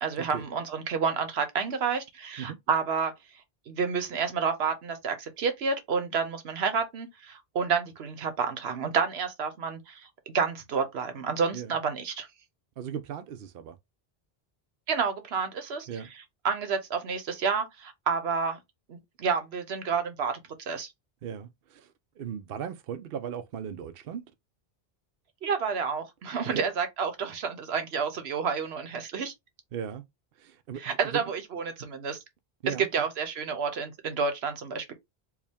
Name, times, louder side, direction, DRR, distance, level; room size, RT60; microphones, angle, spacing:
voice 1, 0.0-3.1 3.7-10.1 10.3-12.3 14.9-15.9 16.4-18.6 18.9-20.4 20.7-20.9 25.4-29.3 30.8-32.2 32.7-34.9, right 5 dB, 90° right, 1.1 m, -29 dB
voice 2, 12.8-13.7 15.9-16.1 21.2-21.9 22.2-24.2 26.5-26.7 29.7-30.0 30.4-31.2 32.6-32.9, right 8 dB, 70° right, 0.8 m, -37 dB
4.8 x 2.3 x 3.5 m
omnidirectional pair, 1.0 m